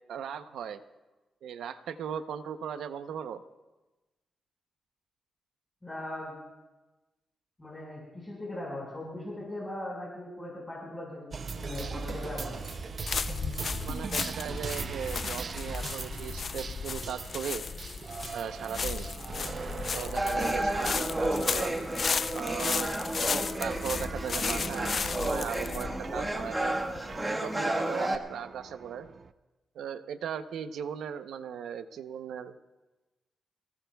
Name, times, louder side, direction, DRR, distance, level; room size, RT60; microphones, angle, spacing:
voice 1, 0.1-0.8 1.4-3.4 13.8-17.6 18.3-19.1 19.9-21.8 22.3-22.9 23.3-26.8 27.3-29.1 29.7-32.5, right 8 dB, 90° right, 10 dB, 0.7 m, -38 dB
voice 2, 5.8-6.3 7.6-12.6, left 1 dB, 15° left, -4 dB, 5.1 m, -39 dB
sound 1, 11.3-29.3, right 5 dB, 50° right, 0.6 m, -40 dB
sound 2, 11.7-27.2, left 5 dB, 50° left, 0.5 m, -35 dB
sound 3, 20.2-28.2, right 1 dB, 15° right, 1.5 m, -32 dB
28.0 x 19.0 x 2.3 m, 1.1 s
cardioid pair, 90°, 0 cm